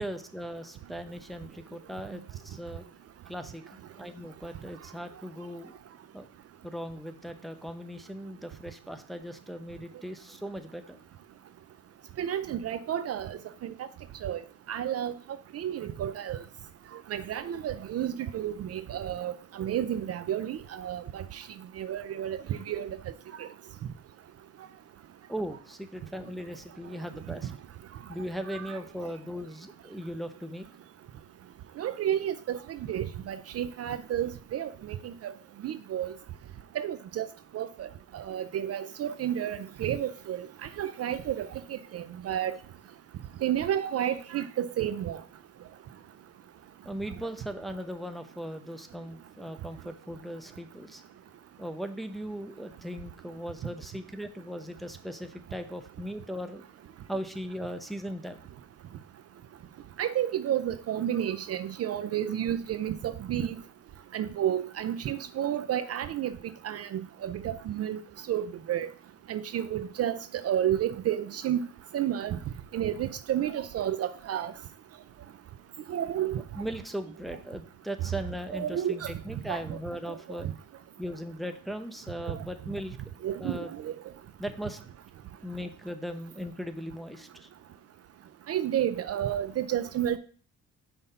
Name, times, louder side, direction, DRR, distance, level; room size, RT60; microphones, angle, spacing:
voice 1, 0.0-2.9 3.3-5.7 6.1-6.3 6.6-11.0 25.3-27.5 28.1-30.6 46.8-51.0 51.6-56.6 57.1-58.5 76.6-80.5 81.0-83.0 83.4-83.7 84.4-84.8 85.4-87.5, equal, ahead, 0.7 m, -38 dB
voice 2, 12.2-13.9 14.2-14.4 14.7-15.1 15.5-16.4 17.1-21.4 21.8-22.9 23.4-23.5 28.5-28.8 31.8-35.3 35.6-36.1 36.8-37.3 37.5-37.9 38.1-40.5 40.8-42.6 43.4-45.2 60.0-63.6 64.1-66.3 66.6-68.0 68.3-68.9 69.3-70.2 70.4-71.6 71.9-72.4 72.7-74.5 75.9-76.4 78.5-79.1 79.5-79.8 80.1-80.2 82.3-82.4 83.2-83.9 88.5-90.2, right 10 dB, 55° right, 0.5 m, -31 dB
5.7 x 3.5 x 5.4 m
cardioid pair, 90°, 30 cm